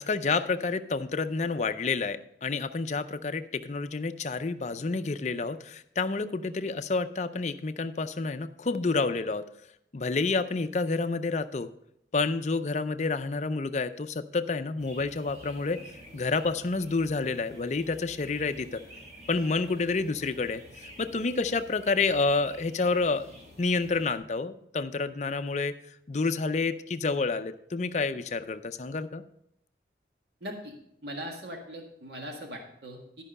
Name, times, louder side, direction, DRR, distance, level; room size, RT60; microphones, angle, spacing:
voice 1, 0.0-9.5 9.9-11.7 12.1-15.8 16.1-18.8 19.3-23.3 23.6-25.7 26.1-29.2, left 3 dB, 40° left, 10 dB, 0.5 m, -29 dB
sound 1, 14.8-24.2, equal, 40° right, 1.9 m, -50 dB
voice 2, 30.4-30.7 31.0-33.2, equal, 65° right, 1 dB, 1.8 m, -40 dB
12.5 x 5.4 x 5.4 m, 0.75 s
head